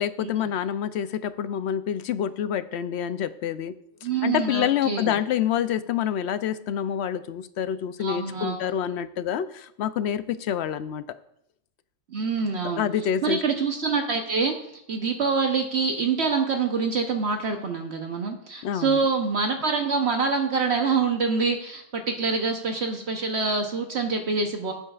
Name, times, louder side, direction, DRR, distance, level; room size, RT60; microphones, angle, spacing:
voice 1, 0.0-3.7 4.2-11.0 12.6-13.4 18.6-19.0, left 9 dB, 65° left, 13 dB, 0.8 m, -27 dB
voice 2, 4.0-5.2 8.0-8.6 12.1-12.9 13.2-14.5 14.9-24.7, right 4 dB, 60° right, 4 dB, 1.1 m, -25 dB
16.5 x 8.9 x 2.4 m, 0.73 s
omnidirectional pair, 1.3 m